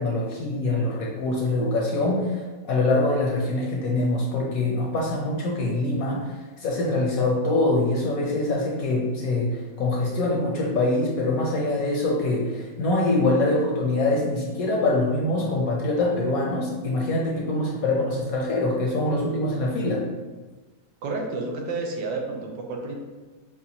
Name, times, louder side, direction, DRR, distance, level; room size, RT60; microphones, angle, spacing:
voice 1, 0.0-2.4 2.7-20.0, left 2 dB, 60° left, -2 dB, 1.0 m, -24 dB
voice 2, 21.0-22.9, right 3 dB, 80° right, 1 dB, 1.4 m, -30 dB
6.6 x 2.5 x 2.8 m, 1.3 s
omnidirectional pair, 1.9 m